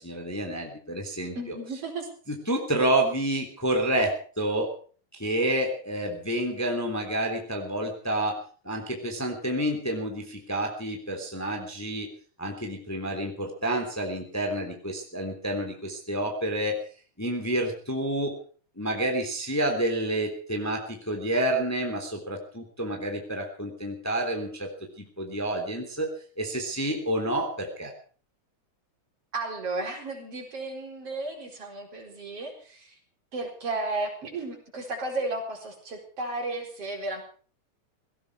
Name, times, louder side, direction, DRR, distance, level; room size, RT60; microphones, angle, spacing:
voice 1, 0.0-1.4 2.3-4.7 5.1-12.1 12.4-16.8 17.2-18.4 18.8-24.7 25.2-26.1 26.4-27.9, right 1 dB, 5° left, 3 dB, 2.8 m, -29 dB
voice 2, 1.4-2.1 29.3-33.0 33.3-37.2, right 2 dB, 55° right, 2 dB, 5.3 m, -33 dB
17.5 x 17.0 x 4.8 m, 0.41 s
omnidirectional pair, 3.4 m